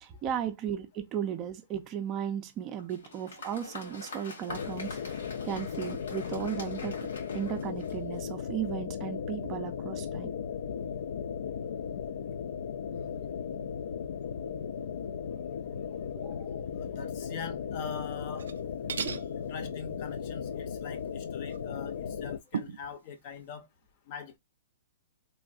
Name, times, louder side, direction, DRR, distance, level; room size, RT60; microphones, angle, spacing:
voice 1, 0.0-10.3 16.2-16.6 19.0-19.3, right 9 dB, 25° right, 0.4 m, -36 dB
Applause, 2.8-8.3, left 3 dB, 90° left, 1.6 m, -46 dB
sound 1, 4.5-22.4, left 7 dB, 70° left, 0.3 m, -36 dB
voice 2, 12.9-13.3 16.6-18.5 19.3-23.7 24.1-24.4, left 6 dB, 40° left, 0.6 m, -42 dB
sound 2, 18.3-18.6 18.9-19.3 21.5-21.6 22.5-22.9, right 6 dB, 85° right, 0.4 m, -35 dB
3.1 x 2.6 x 2.4 m
hypercardioid pair, 155°, 0 cm